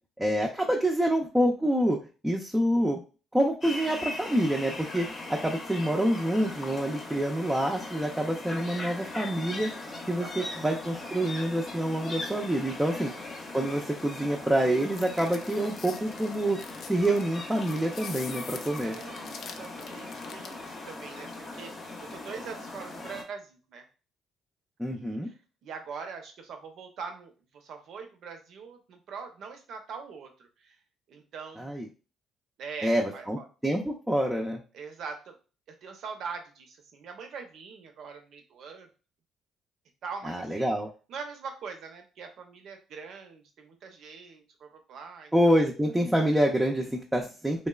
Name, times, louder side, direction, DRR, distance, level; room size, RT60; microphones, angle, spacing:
voice 1, 0.2-3.0 3.3-9.7 10.1-13.1 13.5-16.6 16.9-19.0 24.8-25.3 31.6-31.9 32.8-34.6 40.3-40.9 45.3-47.7, right 1 dB, 5° right, 0 dB, 0.4 m, -27 dB
sound 1, 3.6-23.2, left 2 dB, 40° left, 0.7 m, -40 dB
voice 2, 10.2-10.7 12.9-13.3 18.8-21.7 22.0-23.8 24.8-30.8 31.1-31.7 32.6-33.5 34.7-35.3 35.7-38.9 40.0-40.7 41.1-45.6, right 5 dB, 65° right, 5 dB, 0.6 m, -43 dB
sound 2, 14.7-20.6, left 6 dB, 65° left, 0.3 m, -45 dB
3.1 x 2.0 x 2.2 m, 0.35 s
cardioid pair, 85°, 0 cm